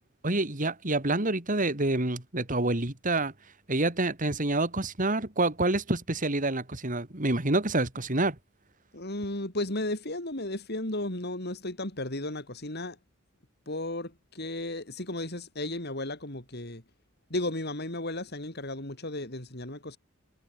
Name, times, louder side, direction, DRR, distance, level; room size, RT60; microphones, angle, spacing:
voice 1, 0.2-3.3 3.7-8.4, right 2 dB, 40° right, 2.8 m, -27 dB
voice 2, 8.9-13.0 13.7-16.8 17.3-20.0, left 1 dB, 50° left, 4.9 m, -34 dB
head